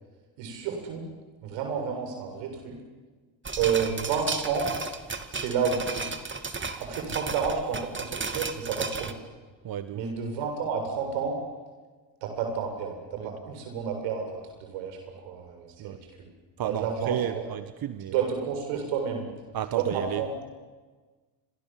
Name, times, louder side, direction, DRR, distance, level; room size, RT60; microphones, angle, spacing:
voice 1, 0.4-1.1 1.4-2.8 3.6-4.8 5.3-6.0 6.8-9.2 9.9-11.4 12.2-16.3 16.6-17.4 18.1-19.3 19.7-20.4, right 6 dB, 85° right, 4 dB, 7.5 m, -30 dB
sound 1, 3.4-9.1, right 4 dB, 25° right, 2.6 m, -34 dB
voice 2, 9.6-10.1 13.2-13.3 15.8-16.0 16.6-18.1 19.5-20.2, right 10 dB, 55° right, 11 dB, 1.4 m, -32 dB
29.5 x 25.5 x 7.7 m, 1.4 s
supercardioid pair, 70°, 43 cm